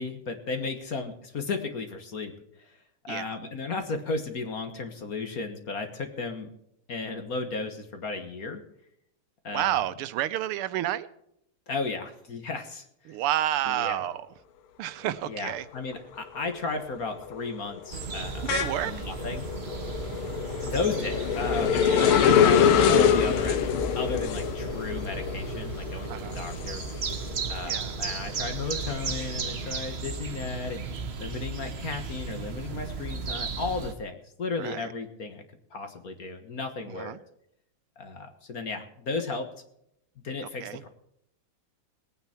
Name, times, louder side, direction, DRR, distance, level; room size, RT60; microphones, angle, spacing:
voice 1, 0.0-2.3 2.6-2.8 3.0-6.5 6.9-8.6 9.4-9.8 11.7-13.2 13.7-14.0 15.2-18.5 18.8-19.5 20.6-26.8 27.5-30.8 31.2-35.4 35.7-37.1 38.0-39.5 40.2-40.9, left 4 dB, 45° left, 6 dB, 1.7 m, -34 dB
voice 2, 9.5-11.1 13.1-14.3 14.8-15.7 18.4-18.9 26.1-26.4 27.6-27.9 34.6-34.9 37.0-37.2 40.4-40.8, right 13 dB, 90° right, 14 dB, 1.6 m, -30 dB
sound 1, 15.6-16.0 16.4-27.6 28.0-29.7, left 8 dB, 85° left, 1.8 m, -25 dB
sound 2, 17.9-33.9, right 4 dB, 40° right, 1.0 m, -35 dB
20.5 x 9.1 x 4.4 m, 0.76 s
omnidirectional pair, 2.4 m